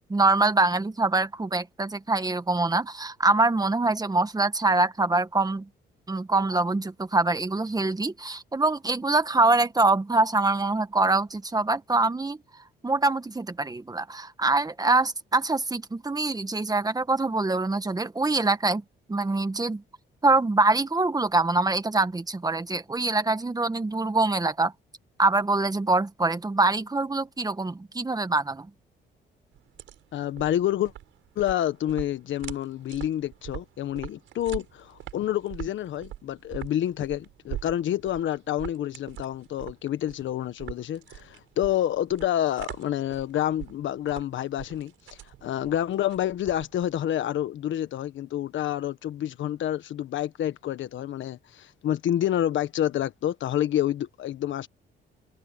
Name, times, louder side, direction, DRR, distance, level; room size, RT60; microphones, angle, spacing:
voice 1, 0.1-5.7 6.1-12.4 12.8-18.8 19.1-19.8 20.2-24.7 25.2-28.7, right 3 dB, 20° right, 1.6 m, -24 dB
sound 1, 29.5-47.0, right 13 dB, 85° right, 6.9 m, -43 dB
voice 2, 30.1-30.9 31.4-44.9 45.4-54.7, left 11 dB, 70° left, 1.4 m, -28 dB
cardioid pair, 90°, 20 cm